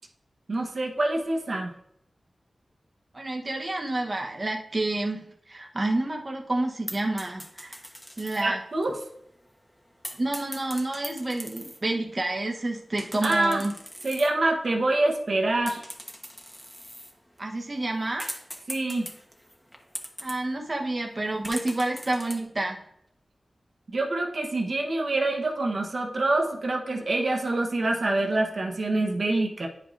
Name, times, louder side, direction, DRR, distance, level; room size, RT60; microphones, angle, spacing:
voice 1, 0.5-1.7 8.4-9.0 13.2-13.6 14.0-15.8 18.7-19.1 23.9-29.7, right 2 dB, 65° right, 1 dB, 0.9 m, -26 dB
voice 2, 3.1-7.8 8.2-8.6 10.2-13.7 17.4-18.4 20.2-22.8, right 2 dB, 40° right, 0 dB, 0.9 m, -29 dB
sound 1, 6.9-8.5 8.8-8.9 10.0-11.8 13.0-14.3 14.8-15.4 15.6-20.4 21.1-21.2 21.4-22.4, equal, 10° left, 1.1 m, -41 dB
9.5 x 5.1 x 2.6 m, 0.74 s
cardioid pair, 50°, 0 cm